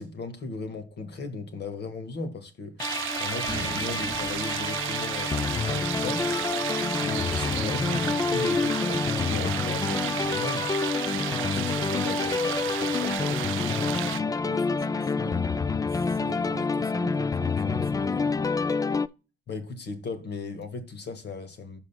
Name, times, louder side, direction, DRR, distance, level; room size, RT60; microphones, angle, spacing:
voice 1, 0.0-2.8 3.2-6.3 7.0-10.7 11.1-13.7 19.5-21.8, left 3 dB, 60° left, 1.7 m, -37 dB
sound 1, 2.8-19.1, left 4 dB, 20° left, 0.3 m, -28 dB
sound 2, 2.8-14.2, right 17 dB, 90° right, 0.4 m, -33 dB
sound 3, 3.1-12.4, left 1 dB, 40° left, 3.7 m, -45 dB
voice 2, 14.4-15.5 15.9-18.3, right 9 dB, 50° right, 0.6 m, -44 dB
14.5 x 5.3 x 2.2 m
cardioid pair, 90°, 20 cm